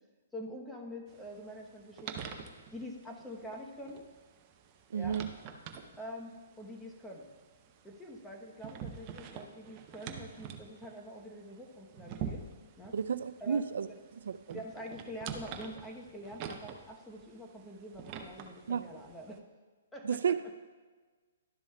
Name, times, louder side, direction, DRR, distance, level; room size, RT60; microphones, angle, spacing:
voice 1, 0.3-2.4 2.7-4.0 4.9-5.2 6.0-7.3 7.8-12.4 12.8-12.9 13.4-14.0 14.5-19.4 19.9-20.2, equal, 5° left, 0 dB, 0.9 m, -46 dB
sound 1, 1.1-19.4, right 7 dB, 30° right, 0.6 m, -47 dB
voice 2, 4.9-5.3 12.9-13.9 14.2-14.6 18.7-18.8 20.0-20.5, right 7 dB, 70° right, 12 dB, 0.3 m, -32 dB
12.0 x 6.9 x 2.3 m, 1.4 s
hypercardioid pair, 145°, 0 cm